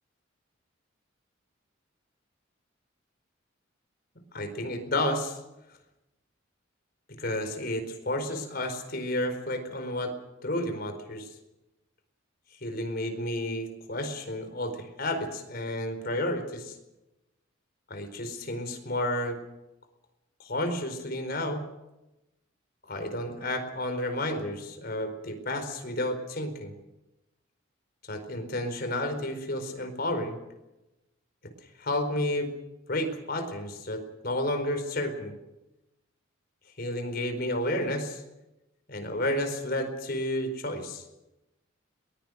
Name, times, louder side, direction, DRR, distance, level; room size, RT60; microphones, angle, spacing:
voice 1, 4.3-5.4 7.2-10.1 10.4-11.3 12.6-16.7 17.9-19.4 20.4-21.6 22.9-26.7 28.0-30.4 31.8-32.5 32.9-35.3 36.8-38.2 38.9-41.0, left 1 dB, 50° left, 8 dB, 4.5 m, -31 dB
22.5 x 21.0 x 6.6 m, 0.96 s
head